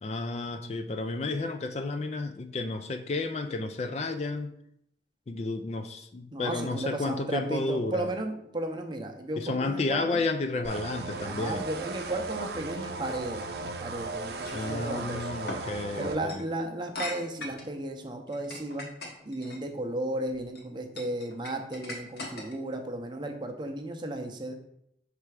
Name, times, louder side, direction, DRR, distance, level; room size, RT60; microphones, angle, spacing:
voice 1, 0.0-4.5 5.3-8.1 9.4-11.7 14.5-16.4, left 3 dB, 35° left, 8 dB, 0.3 m, -32 dB
voice 2, 6.3-10.2 11.2-15.4 16.0-18.9 19.2-24.5, right 1 dB, 25° right, 4 dB, 0.6 m, -34 dB
sound 1, 10.6-16.2, right 3 dB, 60° right, 0.6 m, -36 dB
sound 2, 14.4-14.6 15.5-15.6 16.2-16.4 16.9-17.7 18.3-19.6 20.3-20.6 21.0-22.7, left 2 dB, 60° left, 1.2 m, -39 dB
5.9 x 3.3 x 4.7 m, 0.74 s
head